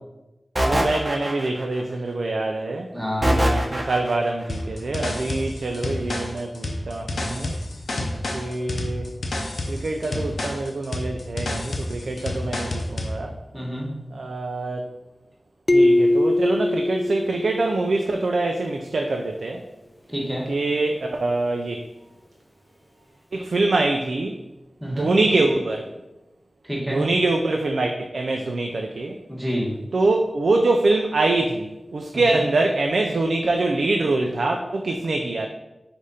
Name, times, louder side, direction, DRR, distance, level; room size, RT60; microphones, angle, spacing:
sound 1, 0.6-1.8 3.2-4.3, equal, 30° right, 0.9 m, -22 dB
voice 1, 0.6-2.9 3.2-7.5 8.3-9.1 9.7-13.3 14.1-14.8 15.7-19.6 20.5-21.8 23.3-24.4 24.9-25.8 26.9-29.2 29.9-35.5, right 2 dB, 80° right, 3 dB, 0.3 m, -24 dB
voice 2, 2.9-3.4 13.5-13.9 20.1-20.5 24.8-25.1 26.6-27.1 29.3-29.7 32.1-32.4, equal, 10° right, -3 dB, 1.5 m, -28 dB
sound 2, 4.5-13.2, left 1 dB, 75° left, 0.6 m, -29 dB
sound 3, 15.7-18.2, left 1 dB, 25° left, 0.4 m, -21 dB
4.8 x 2.5 x 4.1 m, 1.0 s
cardioid pair, 40°, 0 cm